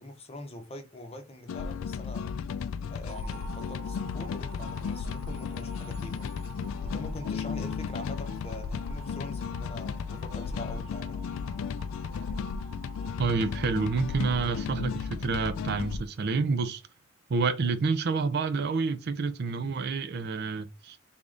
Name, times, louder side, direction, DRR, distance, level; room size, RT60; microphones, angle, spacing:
voice 1, 0.0-2.4 2.9-6.3 6.8-11.3, left 1 dB, 30° left, 0.7 m, -43 dB
sound 1, 1.5-16.0, left 6 dB, 75° left, 0.3 m, -34 dB
sound 2, 3.1-15.2, right 4 dB, 80° right, 1.3 m, -50 dB
voice 2, 13.2-16.8 17.3-21.0, right 4 dB, 50° right, 0.4 m, -28 dB
3.5 x 3.5 x 2.5 m
head